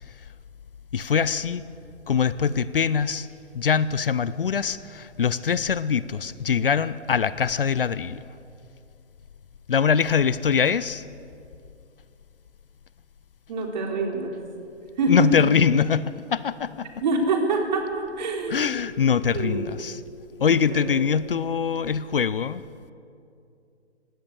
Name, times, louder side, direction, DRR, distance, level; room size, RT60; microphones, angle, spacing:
voice 1, 0.9-1.6 2.1-3.3 3.5-8.2 9.7-11.0 15.1-16.9 18.5-20.0 20.4-22.6, left 6 dB, 55° left, 17 dB, 0.7 m, -23 dB
voice 2, 13.5-14.3 15.0-15.5 17.0-18.8 19.3-19.7 20.4-21.0, right 2 dB, 40° right, 2 dB, 3.9 m, -26 dB
20.0 x 17.0 x 8.5 m, 2.5 s
figure-of-eight pair, 135°, 34 cm